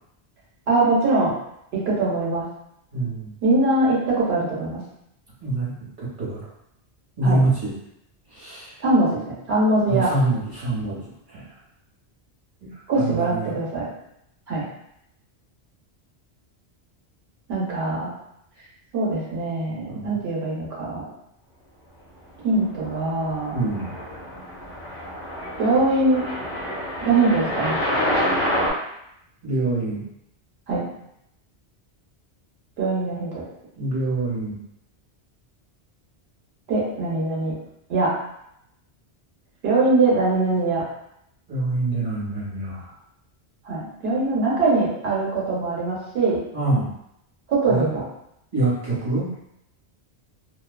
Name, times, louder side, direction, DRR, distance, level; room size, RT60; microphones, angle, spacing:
voice 1, 0.7-1.3 1.7-2.4 3.4-4.8 7.2-7.4 8.8-9.2 9.5-10.1 12.9-13.9 14.5-14.6 17.5-18.1 18.9-21.0 22.4-23.6 25.6-26.2 27.0-27.8 30.7-30.8 32.8-33.4 36.7-37.5 37.9-38.1 39.6-40.8 43.7-46.4 47.5-48.0, right 2 dB, 70° right, -5 dB, 1.1 m, -22 dB
voice 2, 2.9-3.3 5.4-5.7 6.2-6.4 7.2-7.7 8.4-8.6 9.9-11.0 12.6-12.7 13.0-13.6 19.9-20.1 23.5-23.9 29.4-30.0 33.8-34.6 41.5-42.8 46.5-46.9 47.7-47.8 48.5-49.3, right 2 dB, 50° right, -8 dB, 1.3 m, -24 dB
sound 1, 22.6-28.7, equal, 55° left, 1.0 m, -28 dB
2.7 x 2.3 x 2.2 m, 0.78 s
omnidirectional pair, 1.1 m